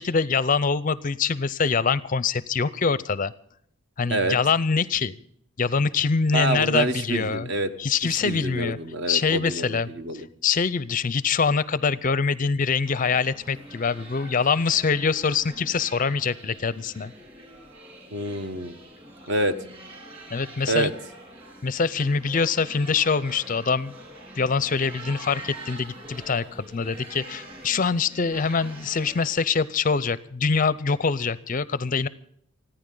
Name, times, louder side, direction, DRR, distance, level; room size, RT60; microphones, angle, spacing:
voice 1, 0.0-3.3 4.0-5.2 5.6-7.5 7.8-8.8 9.1-9.9 10.4-17.1 20.3-20.9 21.6-23.9 24.4-32.1, left 5 dB, 35° left, 18 dB, 0.5 m, -24 dB
voice 2, 6.3-7.7 8.1-10.3 18.1-18.7 19.3-19.6 20.7-20.9, right 2 dB, 50° right, 10 dB, 1.1 m, -27 dB
sound 1, 12.8-29.2, right 1 dB, 25° right, 4.3 m, -44 dB
29.5 x 10.0 x 3.8 m, 0.67 s
head